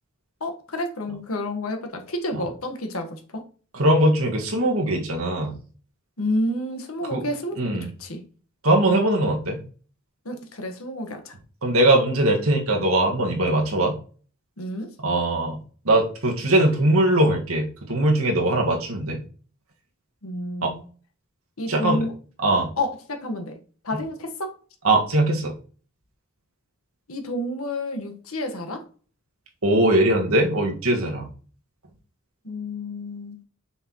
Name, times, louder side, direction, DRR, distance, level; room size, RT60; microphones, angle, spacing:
voice 1, 0.4-3.4 6.2-7.6 8.0-8.2 10.2-11.3 14.6-14.9 18.4-18.5 20.2-20.8 21.6-22.1 22.8-23.5 23.8-24.5 27.1-28.8 32.4-33.4, left 1 dB, 75° left, 5 dB, 1.5 m, -30 dB
voice 2, 3.7-5.5 7.1-7.2 7.6-7.9 8.6-9.6 11.6-13.9 15.0-15.6 15.9-19.2 20.6-20.7 21.7-22.1 22.4-22.7 24.8-25.5 29.6-31.3, right 1 dB, 75° right, 1 dB, 1.8 m, -21 dB
6.3 x 6.0 x 3.1 m, 0.39 s
head